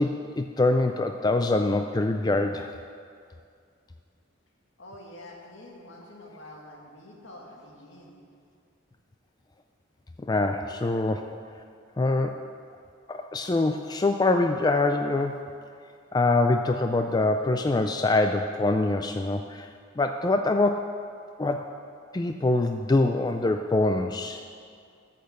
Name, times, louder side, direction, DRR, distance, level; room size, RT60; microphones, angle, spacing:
voice 1, 0.0-2.7 10.3-11.3 12.0-12.4 13.1-15.4 16.1-19.7 20.0-20.9 21.4-21.6 22.1-24.4, left 2 dB, 20° left, 6 dB, 0.3 m, -24 dB
voice 2, 4.8-8.2, left 1 dB, 70° left, -1 dB, 2.0 m, -46 dB
13.0 x 6.8 x 6.6 m, 2.3 s
head